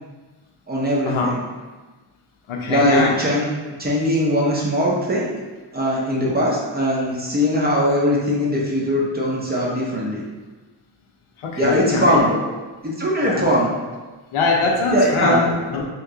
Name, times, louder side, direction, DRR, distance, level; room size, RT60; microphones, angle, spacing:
voice 1, 0.7-1.4 2.7-5.3 5.7-10.2 11.6-12.3 12.8-13.7 14.9-15.5, equal, 20° right, -5 dB, 0.5 m, -20 dB
voice 2, 2.5-3.2 11.4-12.4 13.2-13.5 14.3-15.8, left 3 dB, 85° left, 0 dB, 0.7 m, -22 dB
3.0 x 2.8 x 3.5 m, 1.3 s
wide cardioid pair, 165°, 48 cm